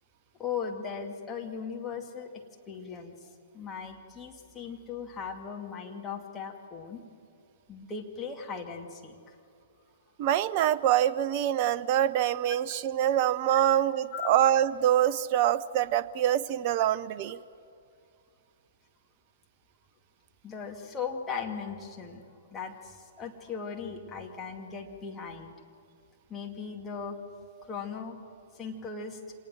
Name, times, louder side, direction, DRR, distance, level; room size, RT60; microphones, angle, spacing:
voice 1, 0.4-7.0 7.7-9.4 13.5-13.6 14.1-14.3 20.4-22.2 22.5-25.5 26.3-27.2 27.6-28.2 28.5-29.2, left 6 dB, 15° left, 1 dB, 2.3 m, -38 dB
voice 2, 10.2-17.4, right 11 dB, 35° right, 15 dB, 0.7 m, -25 dB
26.5 x 19.0 x 7.6 m, 2.4 s
figure-of-eight pair, 115°, 0 cm